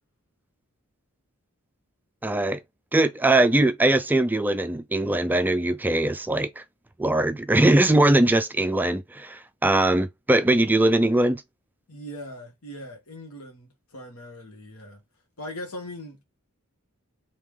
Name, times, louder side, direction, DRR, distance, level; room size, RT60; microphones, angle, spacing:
voice 1, 2.2-2.6 2.9-6.6 7.0-11.4, right 1 dB, 10° right, 0.3 m, -21 dB
voice 2, 11.9-15.0 15.4-16.2, left 1 dB, 90° left, 1.4 m, -40 dB
3.2 x 2.9 x 3.6 m
head